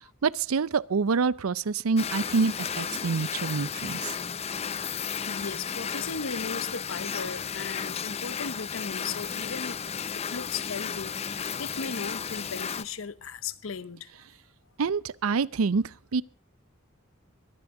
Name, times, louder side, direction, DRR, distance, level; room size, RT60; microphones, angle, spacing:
voice 1, 0.2-4.2 14.8-15.8 16.1-16.2, right 5 dB, 90° right, 0.5 m, -26 dB
sound 1, 2.0-12.8, left 7 dB, 30° left, 0.5 m, -34 dB
voice 2, 5.3-9.8 10.1-14.2, left 5 dB, 70° left, 0.9 m, -37 dB
22.5 x 10.5 x 3.7 m
head